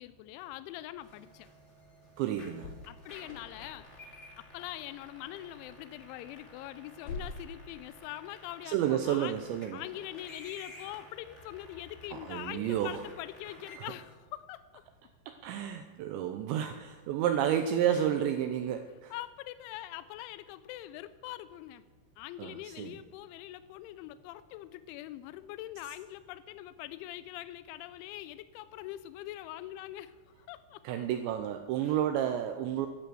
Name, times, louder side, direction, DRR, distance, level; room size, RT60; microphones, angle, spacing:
voice 1, 0.0-1.5 2.9-9.4 9.7-14.8 17.9-18.1 19.1-21.8 22.2-30.8 31.8-32.0, left 14 dB, 85° left, 13 dB, 2.7 m, -43 dB
sound 1, 1.0-14.1, left 1 dB, 25° left, 1.6 m, -54 dB
voice 2, 2.2-2.7 8.7-9.8 12.1-13.0 15.4-19.1 22.4-23.0 30.8-32.9, right 10 dB, 85° right, 7 dB, 2.6 m, -31 dB
sound 2, 2.6-13.3, left 3 dB, 55° left, 3.1 m, -51 dB
12.0 x 11.0 x 7.8 m, 1.3 s
omnidirectional pair, 5.9 m